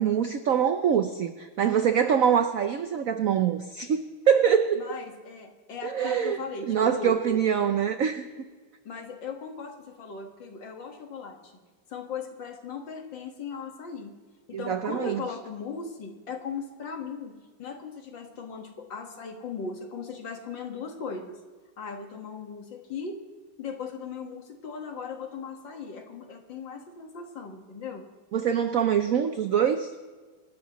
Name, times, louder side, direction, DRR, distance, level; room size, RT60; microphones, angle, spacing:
voice 1, 0.0-4.9 5.8-8.3 14.5-15.2 28.3-29.9, right 8 dB, 75° right, 9 dB, 0.7 m, -24 dB
voice 2, 4.8-7.2 8.9-11.5 11.9-14.1 14.5-21.4 21.8-23.2 23.6-28.0, left 5 dB, 60° left, 4 dB, 2.3 m, -38 dB
26.0 x 13.0 x 3.1 m, 1.5 s
omnidirectional pair, 2.3 m